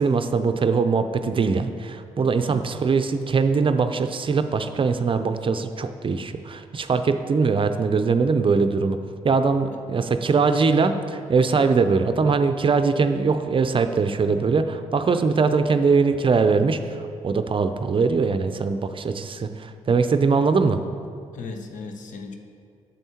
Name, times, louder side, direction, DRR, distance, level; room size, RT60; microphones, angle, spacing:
voice 1, 0.0-9.0 9.2-16.8 17.2-20.8, right 4 dB, 40° right, 8 dB, 0.5 m, -21 dB
voice 2, 21.3-22.3, left 4 dB, 70° left, 5 dB, 0.7 m, -37 dB
8.9 x 7.1 x 2.9 m, 2.3 s
hypercardioid pair, 45°, 14 cm